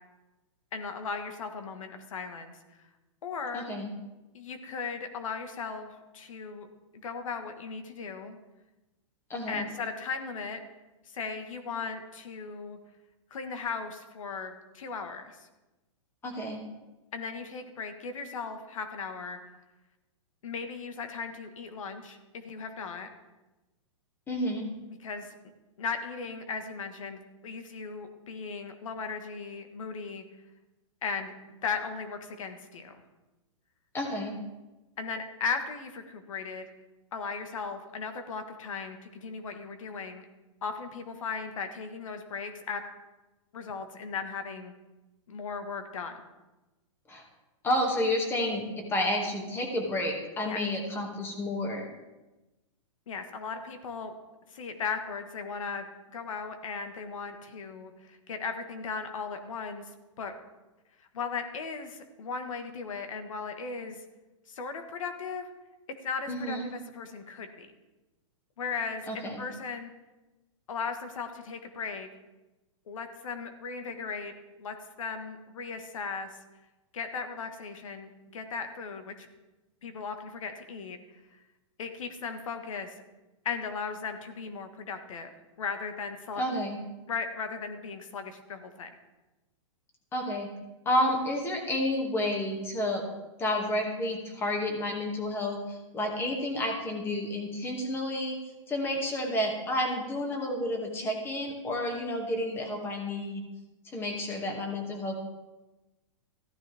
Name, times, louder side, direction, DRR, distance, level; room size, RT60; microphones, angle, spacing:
voice 1, 0.7-2.6 3.2-3.7 4.3-6.7 7.0-8.4 9.5-10.6 11.1-12.8 13.3-15.5 17.1-19.4 20.4-23.1 24.9-25.3 25.8-30.2 31.0-33.0 35.0-36.7 37.1-40.2 40.6-42.8 43.5-44.7 45.3-46.2 50.4-50.6 53.1-54.1 54.5-55.8 56.1-59.9 60.2-60.3 61.1-64.0 64.5-65.5 66.0-67.7 68.6-69.9 70.7-72.1 72.9-74.3 74.6-76.4 76.9-79.3 79.8-81.0 81.8-82.9 83.4-85.3 85.6-86.4 87.1-88.9, left 5 dB, 75° left, 7 dB, 1.7 m, -37 dB
voice 2, 3.5-3.9 9.3-9.7 16.2-16.6 24.3-24.7 33.9-34.4 47.1-47.2 47.6-51.9 66.3-66.7 69.1-69.4 86.4-86.8 90.1-90.5 90.9-93.0 93.4-98.4 98.7-103.4 103.9-105.1, left 1 dB, 15° left, 2 dB, 2.2 m, -30 dB
15.0 x 13.0 x 3.5 m, 1.1 s
hypercardioid pair, 150°, 17 cm